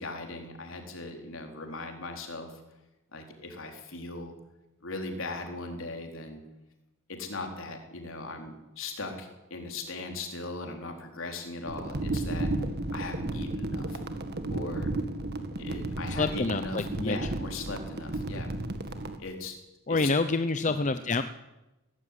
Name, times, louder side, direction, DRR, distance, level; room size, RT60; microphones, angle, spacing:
voice 1, 0.0-2.6 3.1-4.3 4.8-6.4 7.1-12.5 12.9-14.0 14.5-14.9 15.6-18.5 19.2-19.6 19.9-20.1 20.6-21.0, left 2 dB, 65° left, 3 dB, 4.1 m, -39 dB
sound 1, 11.6-19.2, right 2 dB, 50° right, 1.9 m, -33 dB
voice 2, 16.2-17.2 19.9-21.2, left 3 dB, 35° left, 9 dB, 0.8 m, -27 dB
18.0 x 15.5 x 9.9 m, 1.0 s
head